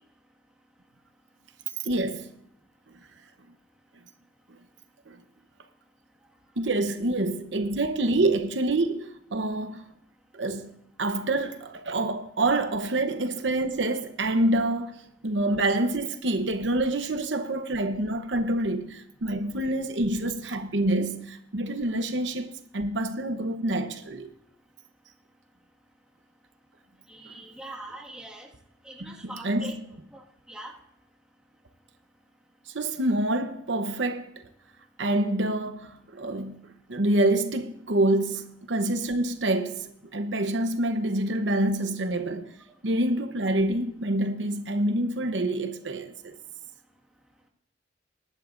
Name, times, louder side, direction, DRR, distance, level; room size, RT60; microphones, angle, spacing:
voice 1, 1.8-2.3 5.1-5.2 6.6-9.8 10.3-10.7 11.0-24.3 29.0-29.1 29.4-29.7 32.7-34.4 35.0-42.6 42.8-46.4, right 1 dB, 75° right, 0.9 m, -27 dB
voice 2, 27.1-28.5 28.8-29.8 30.1-30.8, right 1 dB, 5° right, 1.7 m, -42 dB
19.5 x 11.0 x 2.6 m
head